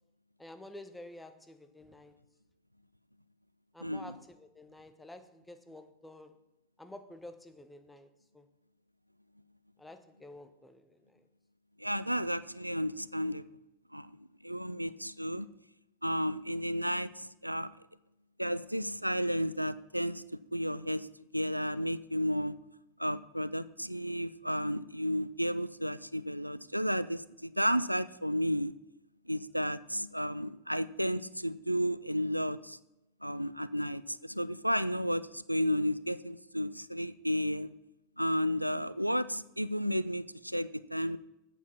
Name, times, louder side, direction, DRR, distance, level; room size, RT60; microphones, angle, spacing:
voice 1, 0.4-2.1 3.7-6.4 6.8-8.4 9.8-11.2, left 1 dB, 5° left, 8 dB, 0.8 m, -50 dB
voice 2, 3.8-4.1 11.8-13.4 13.9-14.1 14.4-15.5 16.0-17.7 18.4-20.2 20.5-21.1 21.3-22.6 23.0-28.7 29.3-32.8 33.2-37.7 38.2-41.2, equal, 90° right, 16 dB, 0.3 m, -32 dB
8.4 x 7.1 x 5.7 m, 0.89 s
figure-of-eight pair, 90°, 0 cm